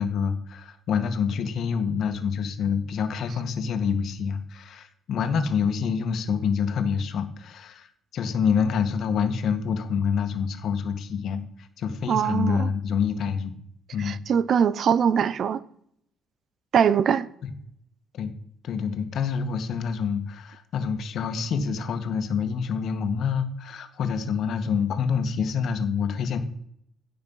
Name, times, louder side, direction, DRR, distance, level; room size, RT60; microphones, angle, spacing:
voice 1, 0.0-13.6 13.9-14.1 18.1-18.3 18.6-26.4, left 6 dB, 60° left, 1.7 m, -27 dB
voice 2, 12.1-12.7 14.0-15.6 16.7-17.3, right 8 dB, 50° right, 0.7 m, -22 dB
16.5 x 6.7 x 5.6 m
cardioid pair, 125°, 0 cm